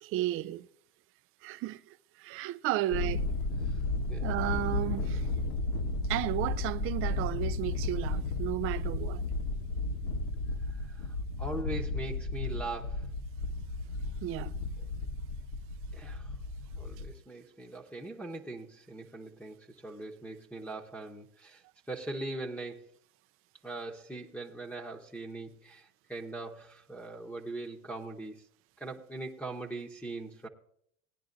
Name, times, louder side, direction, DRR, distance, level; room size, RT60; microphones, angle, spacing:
voice 1, 0.0-0.7 1.4-1.8 2.2-3.2 4.2-5.3 6.1-9.2 14.2-14.5, right 15 dB, 35° right, 0.5 m, -33 dB
Thunder, 2.9-17.1, left 2 dB, 55° left, 1.6 m, -33 dB
voice 2, 4.1-4.4 10.8-13.1 15.9-16.4 16.7-22.9 23.6-28.4 28.8-30.5, right 2 dB, 5° left, 1.0 m, -41 dB
18.5 x 10.0 x 2.6 m
hypercardioid pair, 90°, 41 cm